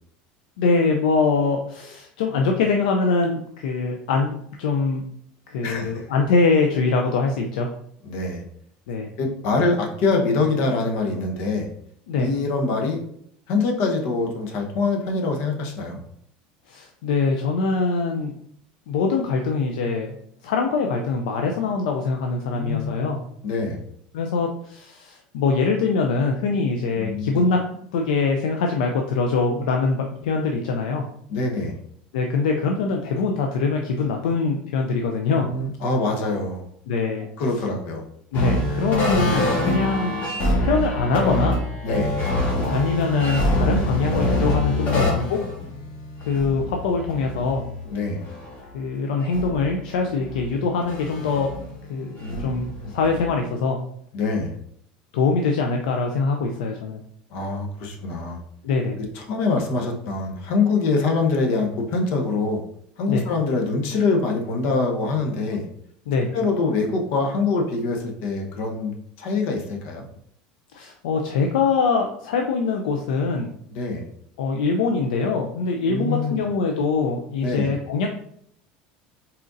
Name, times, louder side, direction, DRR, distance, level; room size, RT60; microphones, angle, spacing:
voice 1, 0.6-5.0 5.5-7.7 8.9-9.1 12.1-12.3 16.7-18.3 18.9-20.2 20.4-23.2 24.1-31.1 32.1-35.5 36.9-37.3 38.3-40.2 40.6-41.6 42.7-45.4 46.2-47.6 48.7-51.5 51.9-53.8 55.1-57.0 58.6-59.0 63.1-63.2 66.1-66.3 70.7-73.5 74.4-78.1, left 4 dB, 85° left, 2 dB, 0.5 m, -23 dB
voice 2, 5.6-6.0 8.0-8.4 9.2-11.7 12.2-13.0 13.5-16.0 22.5-22.9 23.4-23.8 27.0-27.5 31.3-31.8 35.4-36.6 37.4-38.0 41.8-42.2 44.9-45.2 47.9-48.2 52.2-52.9 54.1-54.5 57.3-58.4 59.0-62.6 63.0-65.6 66.3-70.0 73.7-74.1 75.9-76.4 77.4-77.7, left 3 dB, 65° left, 3 dB, 1.0 m, -24 dB
sound 1, 38.3-48.7 49.3-50.4 50.8-53.2, left 1 dB, 50° left, 1.7 m, -26 dB
4.2 x 3.8 x 2.6 m, 0.69 s
supercardioid pair, 110°, 4 cm